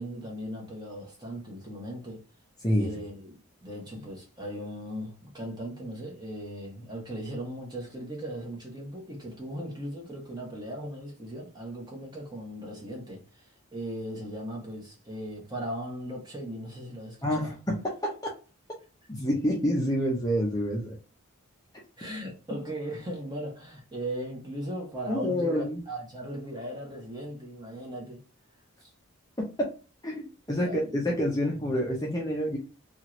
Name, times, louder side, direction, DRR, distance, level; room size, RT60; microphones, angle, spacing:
voice 1, 0.0-2.2 2.8-17.5 22.0-28.2 28.8-28.9 30.5-31.1, right 1 dB, 20° right, 0.9 m, -38 dB
voice 2, 17.2-18.1 19.1-21.0 25.1-25.8 29.6-29.7 30.0-32.6, equal, 15° left, 0.6 m, -27 dB
2.8 x 2.4 x 2.9 m
head